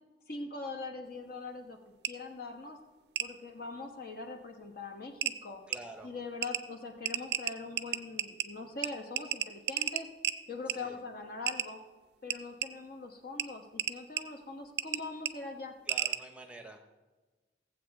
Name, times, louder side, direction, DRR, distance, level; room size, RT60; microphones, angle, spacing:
voice 1, 0.3-1.8 2.0-2.8 3.2-5.6 6.0-10.1 10.5-11.8 12.2-15.7, left 3 dB, 55° left, 3 dB, 1.2 m, -42 dB
sound 1, 2.0-2.1 3.2-3.3 4.6-4.7 5.2-5.3 5.7-5.8 6.4-6.6 7.1-8.5 8.8-8.9 9.2-10.4 10.7-10.8 11.5-11.7 12.3-12.7 13.4-13.5 13.8-14.2 14.8-15.0 15.3-15.4 15.9-16.2, right 11 dB, 60° right, 0.5 m, -32 dB
voice 2, 5.7-6.1 10.7-11.0 15.9-17.0, right 2 dB, 5° right, 4 dB, 0.8 m, -48 dB
17.0 x 7.7 x 3.5 m, 1.3 s
head